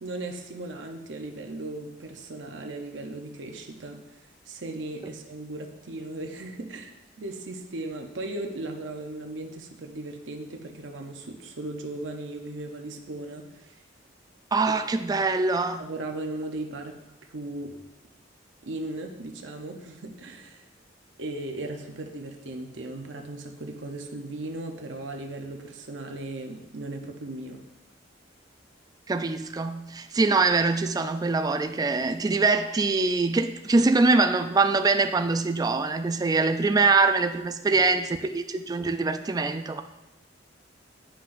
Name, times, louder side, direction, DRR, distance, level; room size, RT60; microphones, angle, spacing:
voice 1, 0.0-4.0 4.5-13.8 15.8-17.0 17.3-17.8 18.7-20.6 21.2-27.6 37.7-37.8 38.1-38.2, right 2 dB, 70° right, 3 dB, 0.7 m, -37 dB
voice 2, 14.5-15.9 29.1-39.8, right 3 dB, 20° right, 8 dB, 0.3 m, -23 dB
10.0 x 5.8 x 2.6 m, 0.97 s
head